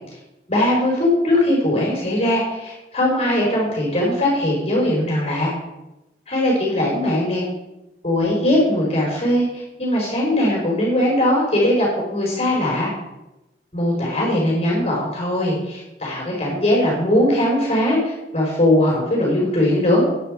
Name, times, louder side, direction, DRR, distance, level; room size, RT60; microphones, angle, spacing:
voice 1, 0.5-5.5 6.3-7.4 8.0-11.9 12.1-12.9 13.7-20.0, left 1 dB, 35° left, -3 dB, 4.7 m, -20 dB
9.9 x 9.3 x 7.6 m, 0.96 s
head